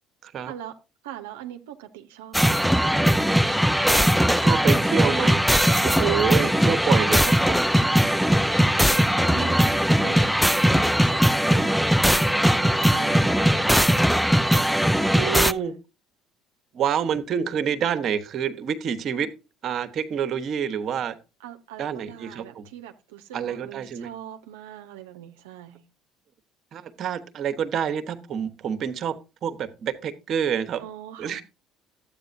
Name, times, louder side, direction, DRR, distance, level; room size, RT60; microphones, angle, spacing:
voice 1, 0.4-0.8 1.0-3.4 7.8-8.1 8.6-11.7 12.0-13.7 14.5-15.7 21.4-25.8 30.8-31.4, right 11 dB, 90° right, 0.7 m, -42 dB
sound 1, 2.3-15.5, equal, ahead, 0.4 m, -20 dB
voice 2, 4.4-5.4 5.8-7.7 15.1-15.7 16.7-19.3 19.6-21.2 21.8-22.7 23.3-24.1 26.7-29.2 29.4-30.8 31.2-31.4, right 8 dB, 55° right, 1.1 m, -27 dB
12.5 x 8.6 x 2.6 m
hypercardioid pair, 70°, 0 cm